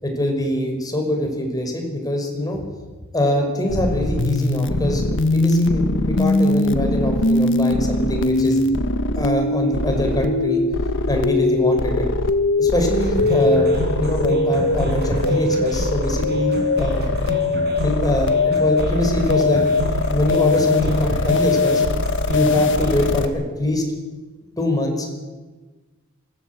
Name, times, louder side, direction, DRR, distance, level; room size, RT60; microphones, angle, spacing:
voice 1, 0.0-2.6 3.1-8.6 9.2-10.6 11.1-12.1 12.6-17.0 17.8-19.6 20.1-21.8 22.3-23.8 24.6-25.1, left 1 dB, 20° left, 3 dB, 5.5 m, -23 dB
sound 1, 3.7-23.2, left 2 dB, 60° left, 1.5 m, -21 dB
sound 2, 12.9-23.3, equal, 50° right, 6.8 m, -29 dB
25.5 x 17.0 x 8.4 m, 1.3 s
head